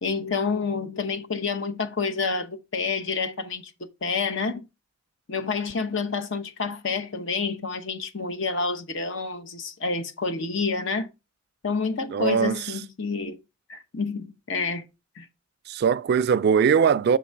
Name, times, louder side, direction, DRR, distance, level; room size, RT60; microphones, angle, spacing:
voice 1, 0.0-4.7 5.3-11.1 11.6-13.4 13.7-14.8 15.2-15.3, left 4 dB, 70° left, 0.9 m, -28 dB
voice 2, 12.1-12.7 15.7-17.2, right 6 dB, 55° right, 0.3 m, -21 dB
6.4 x 3.8 x 4.5 m
head